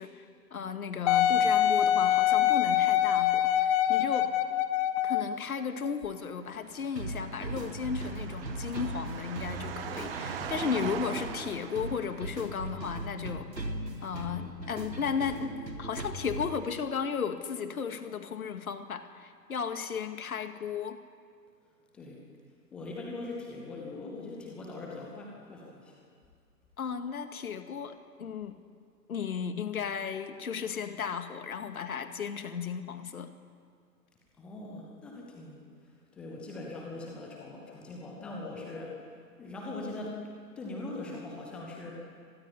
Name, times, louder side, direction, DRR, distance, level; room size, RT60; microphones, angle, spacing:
voice 1, 0.0-4.3 5.0-13.5 14.0-15.5 15.8-21.0 26.8-28.6 29.1-33.3, left 6 dB, 55° left, 8 dB, 2.3 m, -35 dB
Wind instrument woodwind instrument, 1.1-5.4 6.0-6.1, left 11 dB, 20° left, 1.0 m, -24 dB
sound 1, 6.3-12.6, right 8 dB, 35° right, 1.8 m, -41 dB
sound 2, 7.0-16.5, right 2 dB, 85° right, 3.7 m, -39 dB
voice 2, 22.7-26.0 34.4-35.6 36.2-39.0 39.4-40.2 40.6-41.9, left 2 dB, ahead, -1 dB, 0.5 m, -41 dB
25.0 x 19.0 x 9.9 m, 2.1 s
figure-of-eight pair, 130°, 50 cm